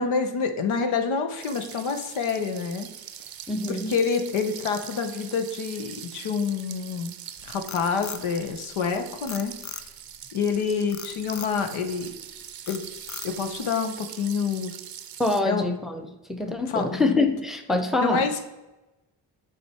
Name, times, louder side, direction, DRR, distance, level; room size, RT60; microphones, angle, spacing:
voice 1, 0.0-2.9 3.7-7.1 7.4-9.6 10.3-12.1 12.7-12.8 13.2-14.7 15.4-15.7 16.7-16.9 18.0-18.4, left 5 dB, 75° left, 6 dB, 0.9 m, -27 dB
sound 1, 1.4-15.4, right 9 dB, 45° right, 0.6 m, -42 dB
voice 2, 3.5-3.9 15.2-16.0 16.3-18.3, left 2 dB, ahead, 6 dB, 0.7 m, -25 dB
Frog, 7.4-8.9 9.3-10.1 10.9-11.6 12.1-12.3 12.7-13.6, left 8 dB, 40° left, 0.5 m, -38 dB
6.5 x 3.5 x 4.3 m, 1.0 s
supercardioid pair, 45°, 50 cm